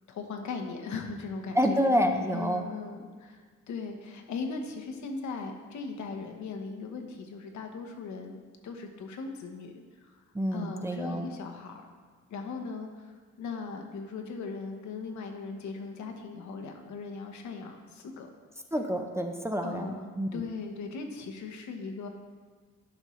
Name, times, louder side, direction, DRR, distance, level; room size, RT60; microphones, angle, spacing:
voice 1, 0.1-1.9 2.3-3.4 3.7-10.2 10.5-11.9 12.3-18.3 19.6-22.1, left 4 dB, 70° left, 4 dB, 1.1 m, -39 dB
voice 2, 1.5-2.6 10.3-11.3 18.7-20.4, equal, 10° right, 4 dB, 0.5 m, -28 dB
11.0 x 5.4 x 3.2 m, 1.5 s
cardioid pair, 90°, 30 cm